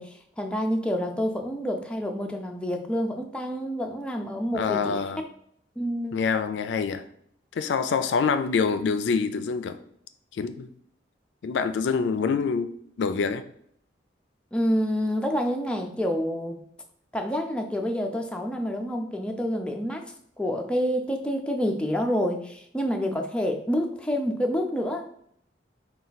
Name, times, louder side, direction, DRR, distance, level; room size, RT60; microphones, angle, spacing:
voice 1, 0.0-5.0 5.8-6.2 14.5-16.6 17.1-20.1 20.4-25.1, equal, 5° left, 0.4 m, -28 dB
voice 2, 4.5-5.2 6.1-7.0 7.5-9.8 10.3-10.7 11.4-12.7 13.0-13.4, left 5 dB, 75° left, 0.3 m, -26 dB
4.2 x 2.3 x 3.9 m
head